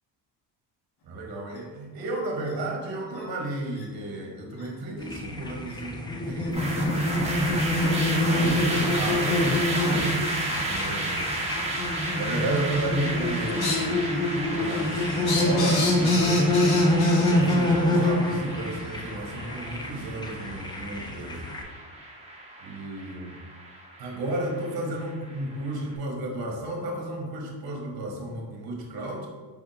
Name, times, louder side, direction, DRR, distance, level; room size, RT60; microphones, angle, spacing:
voice 1, 1.0-6.8 7.7-10.2 10.7-11.3 12.1-14.2 14.4-21.4 22.6-23.4 24.0-29.3, right 1 dB, 55° right, 0 dB, 1.0 m, -33 dB
sound 1, 1.5-1.6 2.4-2.5 3.2-3.3 3.7-3.8 4.5-4.7 5.7-5.8 6.3-6.5 7.0-7.1 7.9-8.0 8.7-8.8 9.5-9.6 10.3-10.4 11.3-11.4 12.3-12.7 13.0-13.9 14.3-17.6, left 3 dB, 60° left, 0.9 m, -33 dB
sound 2, 5.0-21.6, left 1 dB, 10° left, 0.3 m, -26 dB
sound 3, 6.5-25.8, right 1 dB, 15° right, 1.0 m, -33 dB
4.7 x 3.5 x 2.7 m, 1.4 s
cardioid pair, 105°, 43 cm